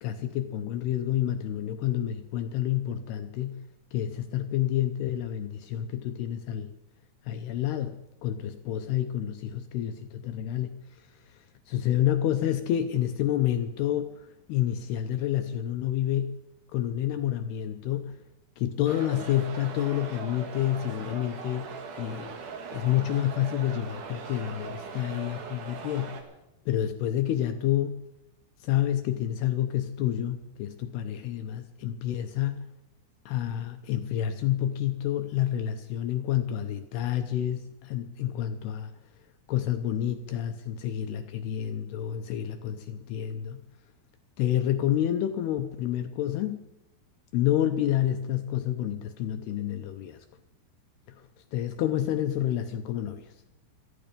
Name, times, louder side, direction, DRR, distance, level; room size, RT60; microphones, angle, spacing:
voice 1, 0.0-3.6 3.9-6.7 7.3-10.7 11.7-14.1 14.5-16.4 16.7-18.2 18.6-22.4 22.7-26.2 26.7-28.0 28.6-32.7 33.3-38.9 39.5-43.6 44.4-46.7 47.3-50.2 51.2-51.3 51.5-53.3, left 11 dB, 75° left, 7 dB, 2.5 m, -29 dB
sound 1, 18.9-26.2, right 5 dB, 55° right, 2.6 m, -40 dB
18.0 x 13.5 x 5.2 m, 0.92 s
omnidirectional pair, 5.2 m